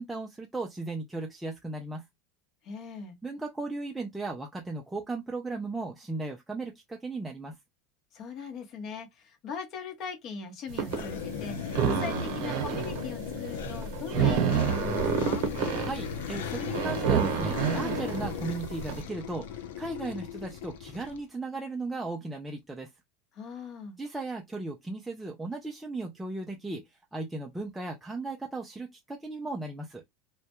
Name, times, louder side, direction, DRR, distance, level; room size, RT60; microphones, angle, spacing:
voice 1, 0.0-2.0 3.2-7.6 15.8-22.9 24.0-26.8 27.1-30.0, right 3 dB, 5° right, 0.3 m, -36 dB
voice 2, 2.6-3.2 8.1-15.4 23.3-24.0, left 5 dB, 45° left, 0.8 m, -40 dB
sound 1, 10.7-19.0, right 7 dB, 60° right, 0.8 m, -29 dB
sound 2, 10.9-21.2, left 9 dB, 90° left, 0.4 m, -37 dB
2.1 x 2.1 x 2.8 m
supercardioid pair, 135°, 0 cm